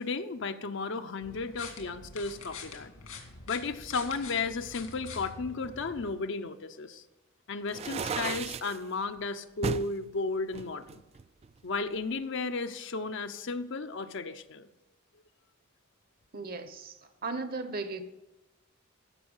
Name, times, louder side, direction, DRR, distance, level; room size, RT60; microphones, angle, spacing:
voice 1, 0.0-2.9 3.5-7.0 7.5-11.0 11.6-14.7, left 4 dB, 60° left, 9 dB, 0.7 m, -34 dB
sound 1, 1.2-6.1, left 4 dB, 80° left, 2.2 m, -45 dB
sound 2, 7.7-8.8 9.6-9.9 10.5-11.6, right 5 dB, 30° right, 0.3 m, -34 dB
voice 2, 16.3-18.0, right 3 dB, 45° right, 10 dB, 0.9 m, -36 dB
14.5 x 5.6 x 5.5 m, 0.98 s
head